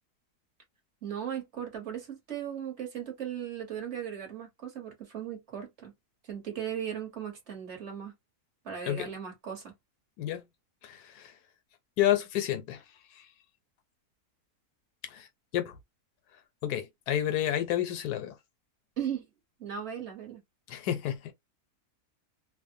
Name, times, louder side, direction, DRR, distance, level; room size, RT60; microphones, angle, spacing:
voice 1, 1.0-5.9 6.2-8.1 8.6-9.7 19.0-19.2 19.6-20.4, right 9 dB, 50° right, 1.3 m, -37 dB
voice 2, 10.8-11.4 12.0-12.8 13.1-13.3 15.0-15.3 15.5-15.8 16.6-18.4 20.7-21.3, left 11 dB, 85° left, 1.2 m, -30 dB
3.0 x 2.0 x 2.6 m
omnidirectional pair, 1.6 m